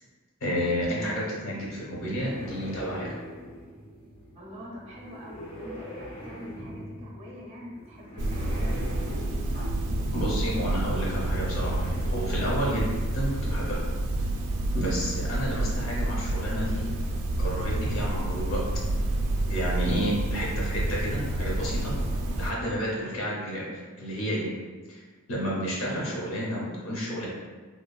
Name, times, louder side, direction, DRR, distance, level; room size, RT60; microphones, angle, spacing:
voice 1, 0.4-3.1 10.1-13.8 14.7-16.9 17.4-18.6 19.5-21.9 22.4-23.7 24.0-24.5 24.9-25.0 25.3-27.3, equal, 70° left, -4 dB, 0.8 m, -30 dB
sound 1, 1.7-13.4, equal, 25° left, 0.5 m, -43 dB
voice 2, 4.3-8.9, left 1 dB, 30° right, -4 dB, 0.6 m, -44 dB
sound 2, 8.2-22.5, right 1 dB, 80° right, 0.3 m, -29 dB
3.1 x 2.2 x 2.3 m, 1.4 s
head